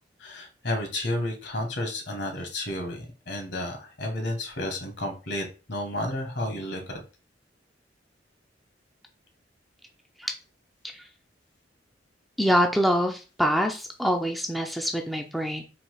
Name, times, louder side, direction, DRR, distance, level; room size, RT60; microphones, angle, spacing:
voice 1, 0.2-7.0, left 1 dB, 65° left, 3 dB, 1.5 m, -32 dB
voice 2, 12.4-15.6, equal, ahead, 2 dB, 0.4 m, -25 dB
4.1 x 2.8 x 4.7 m, 0.33 s
head